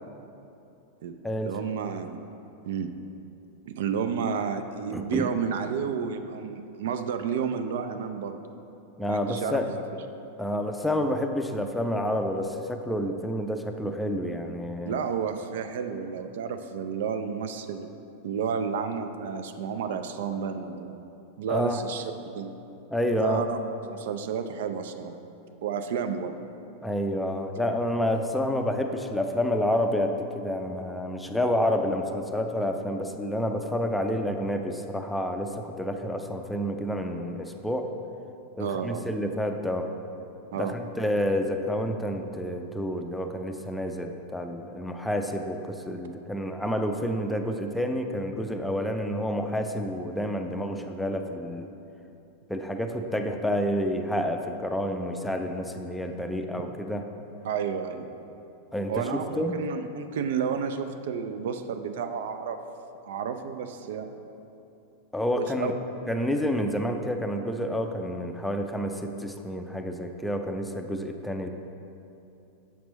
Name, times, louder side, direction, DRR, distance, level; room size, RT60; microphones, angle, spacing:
voice 1, 1.4-2.2 2.6-2.9 3.7-8.4 9.1-9.6 14.9-17.9 18.2-20.9 21.4-22.5 23.2-25.2 25.6-26.4 38.6-39.0 40.5-40.8 57.4-58.1 58.9-62.6 63.0-64.1 65.3-65.7, right 7 dB, 55° right, 8 dB, 0.3 m, -31 dB
voice 2, 4.9-5.3 9.0-9.7 10.4-15.0 21.5-21.8 22.9-23.4 26.8-37.9 38.6-39.9 40.6-51.7 52.5-57.0 58.7-59.6 65.1-65.7 66.1-71.5, equal, 5° left, 5 dB, 0.5 m, -29 dB
7.3 x 6.0 x 4.0 m, 2.8 s
figure-of-eight pair, 90°, 0 cm